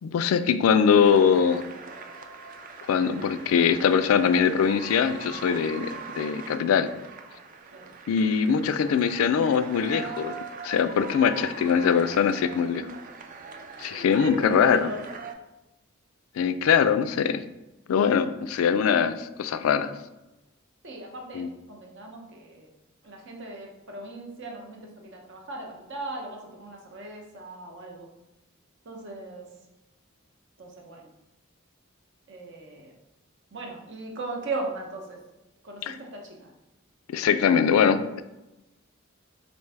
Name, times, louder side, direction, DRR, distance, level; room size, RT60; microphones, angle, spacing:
voice 1, 0.0-1.6 2.9-6.9 8.1-10.4 10.6-12.9 13.8-14.9 16.4-17.4 17.9-19.9 21.3-21.5 35.8-36.0 37.1-38.2, left 7 dB, 85° left, 12 dB, 0.3 m, -22 dB
sound 1, 0.9-15.3, right 4 dB, 40° right, 0.4 m, -42 dB
voice 2, 14.0-15.0 20.8-22.7 23.0-28.1 28.8-29.5 30.6-31.1 32.3-32.9 33.5-35.2 35.6-36.5, right 2 dB, 60° right, 1 dB, 0.8 m, -37 dB
4.5 x 2.6 x 3.3 m, 0.99 s
head